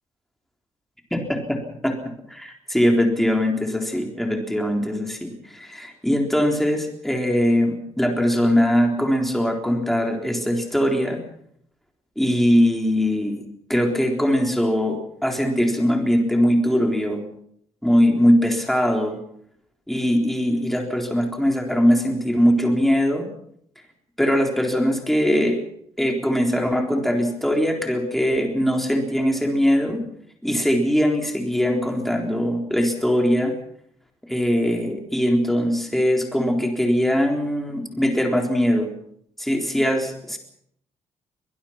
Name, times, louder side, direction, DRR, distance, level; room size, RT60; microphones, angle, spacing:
voice 1, 1.1-1.6 1.8-2.0 2.3-11.2 12.2-13.4 13.7-15.0 15.2-17.3 17.8-19.2 19.9-23.3 24.2-25.6 26.0-30.0 30.4-33.5 34.3-38.9 39.4-40.4, equal, ahead, 2 dB, 3.8 m, -21 dB
23.0 x 20.0 x 5.9 m, 0.68 s
cardioid pair, 145°, 12 cm